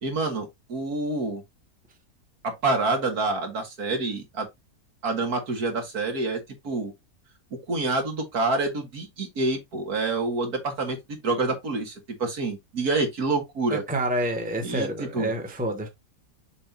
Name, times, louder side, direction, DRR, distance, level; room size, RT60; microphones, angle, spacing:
voice 1, 0.0-1.4 2.4-4.5 5.0-6.9 7.5-13.8 14.6-15.3, right 3 dB, 65° right, 2.4 m, -27 dB
voice 2, 13.7-15.9, right 1 dB, 5° right, 1.2 m, -28 dB
6.8 x 2.8 x 5.3 m
omnidirectional pair, 1.7 m